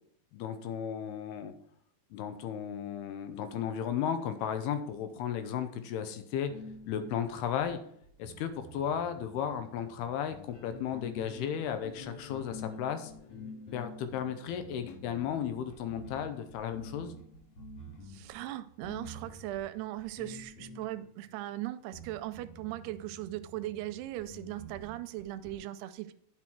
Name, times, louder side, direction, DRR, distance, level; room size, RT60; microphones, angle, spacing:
voice 1, 0.3-1.5 2.1-6.5 6.9-7.8 8.2-13.1 13.7-17.1, left 8 dB, 80° left, 9 dB, 2.7 m, -34 dB
sound 1, 6.5-21.4 21.9-25.6, left 1 dB, 45° left, 2.1 m, -48 dB
voice 2, 18.1-26.1, right 14 dB, 85° right, 12 dB, 2.5 m, -39 dB
9.9 x 6.2 x 4.4 m, 0.66 s
omnidirectional pair, 4.8 m